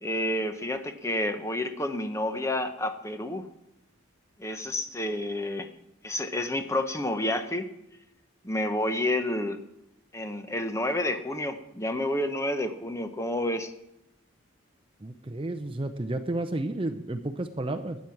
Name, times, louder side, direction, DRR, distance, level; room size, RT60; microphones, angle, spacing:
voice 1, 0.0-3.5 4.4-5.7 6.0-7.7 8.4-9.6 10.1-13.7, left 1 dB, 15° left, 8 dB, 0.8 m, -29 dB
voice 2, 15.0-18.0, right 2 dB, 25° right, 7 dB, 0.6 m, -32 dB
12.5 x 9.3 x 7.1 m, 0.85 s
head